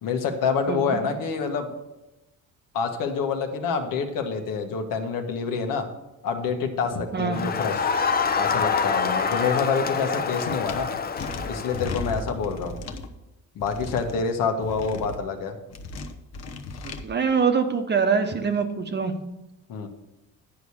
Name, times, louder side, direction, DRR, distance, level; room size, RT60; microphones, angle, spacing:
voice 1, 0.0-1.7 2.7-5.9 6.2-7.9 8.3-10.9 11.5-12.8 13.5-15.6 19.7-19.9, left 5 dB, 80° left, 5 dB, 1.4 m, -27 dB
voice 2, 0.7-1.1 7.1-7.4 16.8-19.1, right 5 dB, 35° right, 7 dB, 1.0 m, -24 dB
Crowd, 7.3-12.1, left 5 dB, 30° left, 0.6 m, -26 dB
sound 1, 10.7-10.8 11.2-13.1 13.6-14.1 14.6-15.2 15.7-17.0, left 3 dB, 50° left, 1.0 m, -35 dB
10.0 x 4.9 x 7.0 m, 0.97 s
cardioid pair, 110°, 32 cm